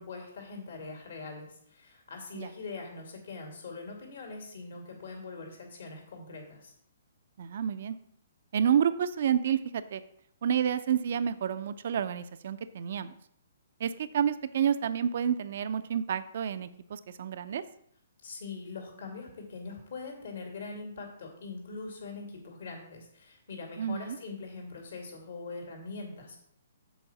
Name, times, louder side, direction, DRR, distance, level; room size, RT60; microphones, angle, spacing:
voice 1, 0.0-6.7 18.2-26.4, left 4 dB, 65° left, 1 dB, 2.3 m, -42 dB
voice 2, 7.4-8.0 8.5-10.0 10.4-13.2 13.8-17.6 23.8-24.2, right 8 dB, 60° right, 13 dB, 0.5 m, -29 dB
7.1 x 4.6 x 7.0 m, 0.71 s
hypercardioid pair, 135°, 0 cm